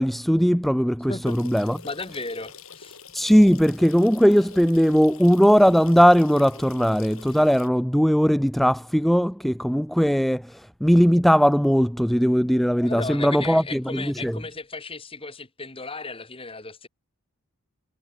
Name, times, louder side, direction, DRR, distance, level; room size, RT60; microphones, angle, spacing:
voice 1, 0.0-1.8 3.1-10.4 10.8-14.3, equal, ahead, 0.6 m, -19 dB
voice 2, 1.1-3.0 12.8-16.9, left 3 dB, 25° left, 2.7 m, -35 dB
sound 1, 1.2-7.7, left 6 dB, 65° left, 3.9 m, -45 dB
head